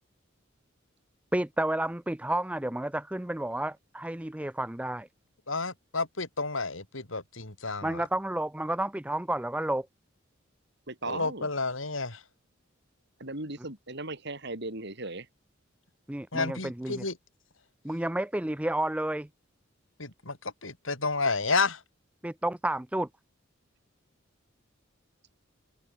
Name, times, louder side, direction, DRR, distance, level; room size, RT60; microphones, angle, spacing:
voice 1, 1.3-5.1 7.8-9.9 16.1-17.0 17.8-19.3 22.2-23.1, right 1 dB, 5° right, 0.6 m, -31 dB
voice 2, 5.5-8.0 11.0-12.2 16.3-17.2 20.0-21.8, left 3 dB, 80° left, 5.6 m, -31 dB
voice 3, 10.9-11.5 13.2-15.3, right 2 dB, 60° right, 7.2 m, -37 dB
open air
head